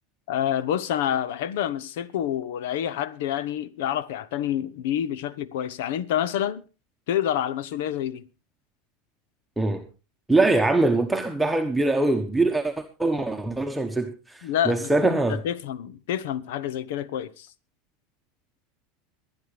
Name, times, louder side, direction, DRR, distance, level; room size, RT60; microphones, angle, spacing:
voice 1, 0.3-6.6 7.1-8.3 14.4-17.5, left 10 dB, 75° left, 0.9 m, -28 dB
voice 2, 10.3-12.7 13.0-15.4, right 2 dB, 5° right, 1.2 m, -23 dB
23.0 x 9.9 x 3.3 m
hypercardioid pair, 95°, 0 cm